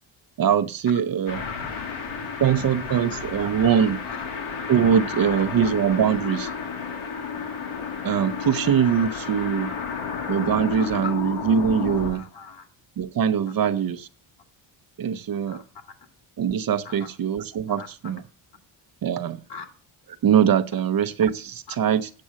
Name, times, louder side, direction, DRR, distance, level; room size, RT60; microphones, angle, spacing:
voice 1, 0.4-1.4 2.4-4.0 4.7-6.5 8.0-9.7 10.3-12.2 13.0-14.1 15.0-15.6 16.4-18.2 19.0-19.4 20.2-22.1, right 8 dB, 45° right, 0.8 m, -22 dB
sound 1, 1.3-12.1, left 6 dB, 80° left, 2.6 m, -32 dB
voice 2, 1.3-1.9 2.9-3.2 3.7-4.5 5.2-5.4 6.0-6.5 9.2-9.3 9.9-10.1 10.8-11.1 12.0-12.7 15.5-15.6 16.8-17.1 17.7-17.9 19.5-19.7, left 5 dB, 60° left, 2.4 m, -40 dB
8.5 x 6.1 x 7.5 m
cardioid pair, 105°, 47 cm